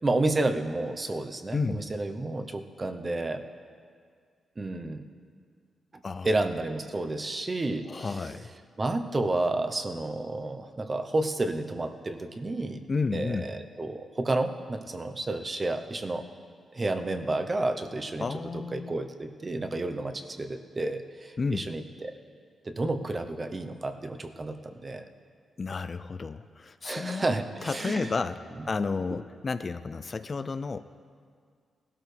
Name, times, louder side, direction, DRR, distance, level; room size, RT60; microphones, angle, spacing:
voice 1, 0.0-3.4 4.6-5.0 5.9-8.4 8.8-12.8 13.1-16.2 16.7-18.3 18.5-22.1 22.6-25.1 26.8-28.1, right 2 dB, 25° right, 7 dB, 0.8 m, -31 dB
voice 2, 1.5-1.8 6.0-6.3 7.9-8.5 12.9-13.5 18.2-19.0 21.4-21.7 25.6-27.2 27.6-30.8, left 4 dB, 35° left, 12 dB, 0.4 m, -31 dB
18.5 x 12.5 x 3.4 m, 2.1 s
cardioid pair, 105°, 0 cm